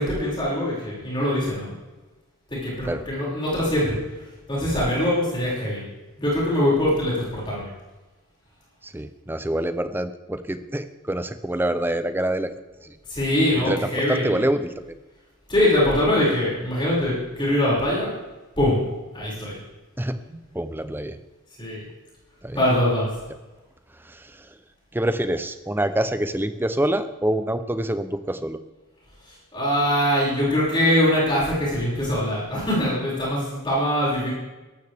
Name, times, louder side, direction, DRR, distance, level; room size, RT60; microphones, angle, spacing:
voice 1, 0.0-1.7 2.5-3.9 4.5-5.8 6.2-7.7 13.1-14.3 15.5-18.1 18.6-18.8 19.1-19.5 21.6-21.8 22.5-23.1 29.5-34.3, left 1 dB, 20° left, -6 dB, 5.8 m, -22 dB
voice 2, 8.8-12.5 12.8-13.0 13.6-14.9 20.0-20.2 20.5-21.2 22.4-22.6 24.0-24.6 24.9-28.6, right 1 dB, 10° right, 11 dB, 0.6 m, -26 dB
17.5 x 13.5 x 3.5 m, 1.2 s
head